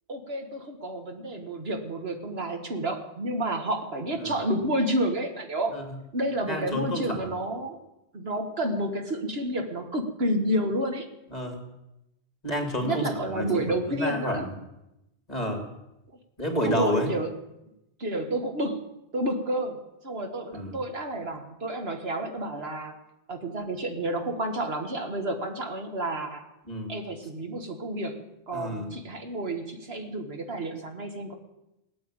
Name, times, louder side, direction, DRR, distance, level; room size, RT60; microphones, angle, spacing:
voice 1, 0.1-5.8 6.1-7.8 8.1-11.1 12.8-14.5 16.6-17.3 18.0-18.8 19.1-22.9 23.3-26.5 26.9-28.2 28.5-31.3, right 1 dB, 65° right, 5 dB, 1.8 m, -30 dB
voice 2, 6.5-7.4 11.3-11.6 12.4-14.5 15.3-15.6 16.4-17.1 20.5-20.8 26.7-26.9 28.5-28.9, equal, 35° left, 3 dB, 3.0 m, -30 dB
18.0 x 9.1 x 8.7 m, 0.91 s
omnidirectional pair, 1.1 m